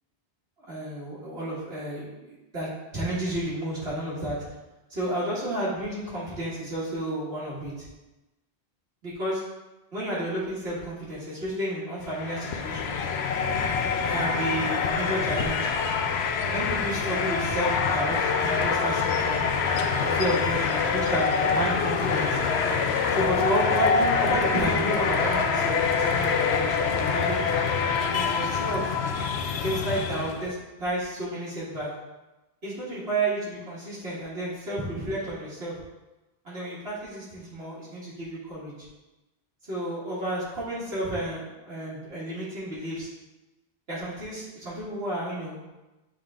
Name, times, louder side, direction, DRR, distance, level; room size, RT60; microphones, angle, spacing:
voice 1, 0.7-4.4 4.9-7.9 9.0-9.4 9.9-13.1 14.1-15.7 16.5-19.5 20.0-22.4 23.1-27.5 28.1-29.0 29.6-31.9 32.6-35.8 36.4-38.7 39.7-43.1 43.9-45.6, right 1 dB, 85° right, -9 dB, 2.1 m, -31 dB
sound 1, 12.0-30.5, left 5 dB, 80° left, 0.9 m, -25 dB
7.9 x 3.8 x 3.6 m, 1.0 s
omnidirectional pair, 1.1 m